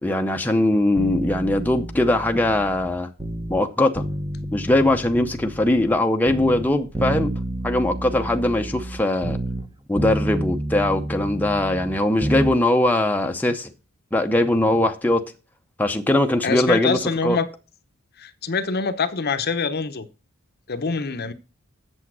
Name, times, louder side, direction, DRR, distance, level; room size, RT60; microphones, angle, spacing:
voice 1, 0.0-3.1 3.5-4.0 4.5-7.3 7.6-9.4 9.9-13.7 14.1-15.2 15.8-17.4, left 1 dB, 10° left, 0.7 m, -21 dB
sound 1, 1.0-3.6 4.0-6.0 6.3-9.7 10.0-12.6 12.9-13.0, right 1 dB, 20° right, 0.9 m, -30 dB
voice 2, 16.4-17.5 18.2-20.1 20.7-21.3, left 5 dB, 50° left, 0.8 m, -25 dB
8.3 x 7.0 x 6.2 m
head